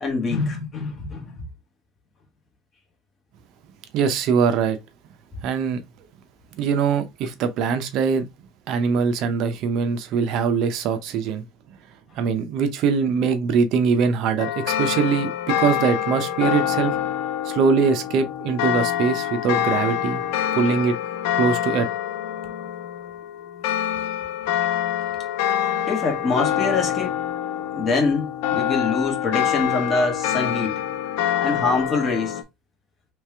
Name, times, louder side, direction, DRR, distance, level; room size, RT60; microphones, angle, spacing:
voice 1, 0.0-1.3 25.9-27.2 27.7-30.8 31.4-32.4, left 3 dB, 25° left, 1.3 m, -24 dB
voice 2, 3.9-4.8 5.4-5.8 6.5-8.3 8.7-11.8 12.1-17.0 17.4-20.2 20.6-21.0 21.3-21.9, right 6 dB, 55° right, 0.6 m, -22 dB
sound 1, 14.4-32.4, left 10 dB, 80° left, 0.7 m, -26 dB
3.3 x 3.2 x 3.3 m
cardioid pair, 155°, 0 cm